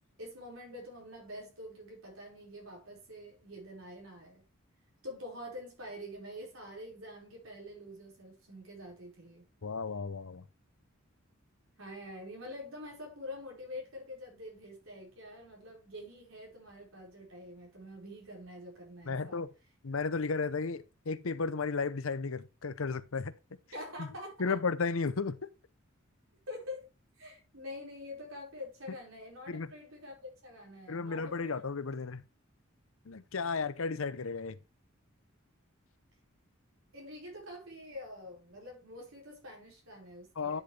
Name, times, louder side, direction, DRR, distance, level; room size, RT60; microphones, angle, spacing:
voice 1, 0.2-4.4 5.0-9.5 11.8-19.4 23.7-24.6 26.5-26.9 27.2-31.7 36.9-40.6, left 1 dB, 75° right, 5.1 m, -46 dB
voice 2, 9.6-10.5 19.1-19.5 19.8-23.3 24.0-24.1 24.4-25.5 29.5-29.7 30.9-32.2 33.1-34.6 40.4-40.6, left 4 dB, 75° left, 0.7 m, -34 dB
10.0 x 6.7 x 3.3 m
head